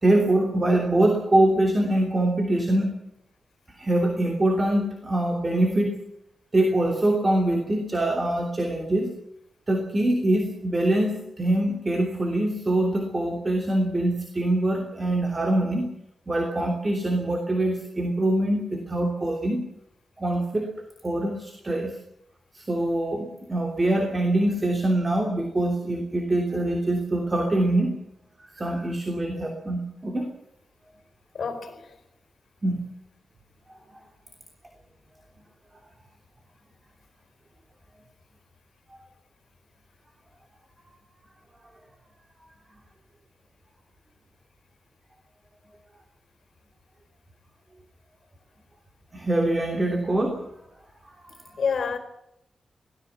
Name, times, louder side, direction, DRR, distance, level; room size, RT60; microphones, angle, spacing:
voice 1, 0.0-3.0 3.8-6.0 6.5-9.1 9.7-15.9 16.3-19.6 20.2-20.7 21.0-22.0 22.5-27.9 28.6-30.3 32.6-32.9 49.1-50.4, right 1 dB, 25° right, 3.1 m, -24 dB
voice 2, 31.3-31.9 51.6-52.0, left 6 dB, 55° left, 4.4 m, -28 dB
24.0 x 18.0 x 7.3 m
wide cardioid pair, 150°, 0 cm